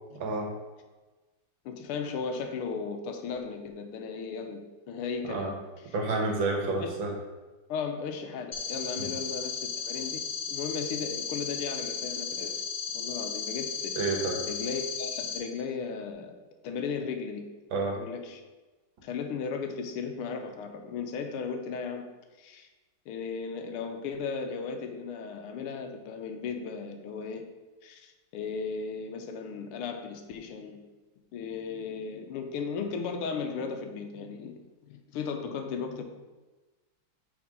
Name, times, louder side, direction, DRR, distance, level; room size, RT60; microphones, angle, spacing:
voice 1, 0.2-0.5 5.3-5.5 5.9-7.1 9.0-9.1 14.0-14.4 17.7-18.0, right 3 dB, 65° right, 1 dB, 1.9 m, -29 dB
voice 2, 1.6-5.6 5.8-5.9 6.8-6.9 7.7-10.2 10.5-12.6 12.9-13.9 14.4-16.3 16.6-17.4 17.9-18.4 19.0-22.0 22.4-22.7 23.1-27.4 27.8-30.8 31.3-34.5 34.8-36.0, left 5 dB, 85° left, 6 dB, 1.7 m, -36 dB
sound 1, 8.5-15.4, left 6 dB, 35° left, 1.5 m, -35 dB
6.0 x 4.4 x 5.3 m, 1.2 s
omnidirectional pair, 2.4 m